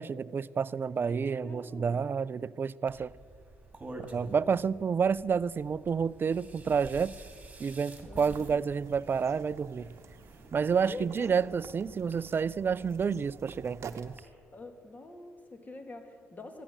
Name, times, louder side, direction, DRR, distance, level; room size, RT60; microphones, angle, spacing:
voice 1, 0.0-3.1 4.1-7.1 7.6-9.9 10.5-14.1, right 6 dB, 40° right, 0.4 m, -29 dB
voice 2, 1.1-2.0 8.1-8.6 10.8-11.4 14.5-16.6, left 2 dB, 30° left, 2.1 m, -45 dB
sound 1, 2.9-14.2, right 2 dB, 20° right, 2.5 m, -50 dB
sound 2, 8.3-14.2, right 7 dB, 60° right, 0.9 m, -51 dB
14.0 x 10.0 x 7.4 m
supercardioid pair, 60°, 6 cm